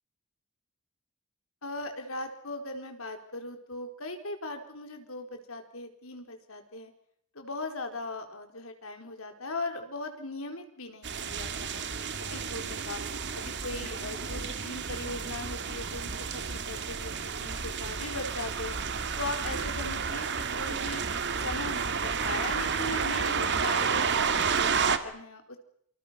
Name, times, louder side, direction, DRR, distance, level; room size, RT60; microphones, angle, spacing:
voice 1, 1.6-6.9 7.3-11.9 12.2-13.0 13.3-17.1 17.4-18.8 19.2-21.0 21.4-25.6, left 2 dB, 70° left, 5 dB, 4.5 m, -39 dB
sound 1, 11.0-25.0, right 6 dB, 55° right, 2.1 m, -31 dB
28.0 x 26.0 x 5.9 m, 0.65 s
head